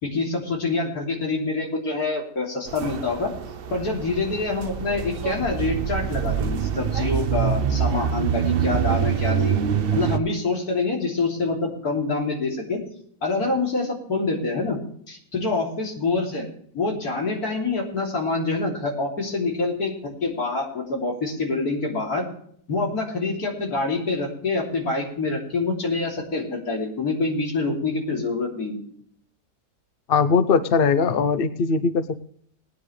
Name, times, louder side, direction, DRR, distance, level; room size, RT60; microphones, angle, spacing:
voice 1, 0.0-3.3 3.7-9.6 9.9-12.8 13.2-14.8 15.1-16.5 16.7-22.3 22.7-28.8, left 3 dB, 75° left, 0 dB, 3.6 m, -26 dB
sound 1, 2.7-10.2, right 8 dB, 50° right, 0.7 m, -25 dB
voice 2, 30.1-32.2, left 5 dB, 50° left, 12 dB, 0.8 m, -20 dB
19.5 x 9.8 x 3.3 m, 0.64 s
omnidirectional pair, 1.6 m